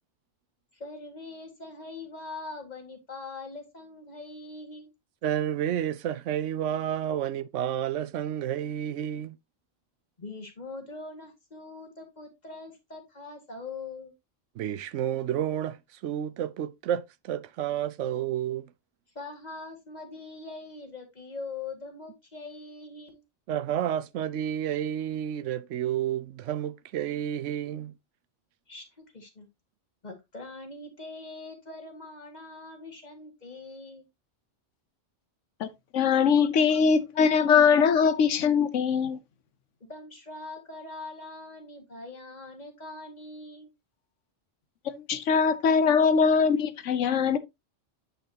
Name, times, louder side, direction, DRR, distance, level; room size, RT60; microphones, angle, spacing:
voice 1, 0.7-4.9 7.1-7.2 10.2-14.1 19.2-23.2 28.7-29.5 30.0-34.0 39.9-43.7, left 3 dB, 35° left, 2.0 m, -42 dB
voice 2, 5.2-9.4 14.6-18.7 23.5-27.9, right 10 dB, 85° right, 1.0 m, -30 dB
voice 3, 35.9-39.2 44.9-47.4, left 6 dB, 85° left, 1.2 m, -22 dB
8.9 x 5.6 x 2.8 m
omnidirectional pair, 1.2 m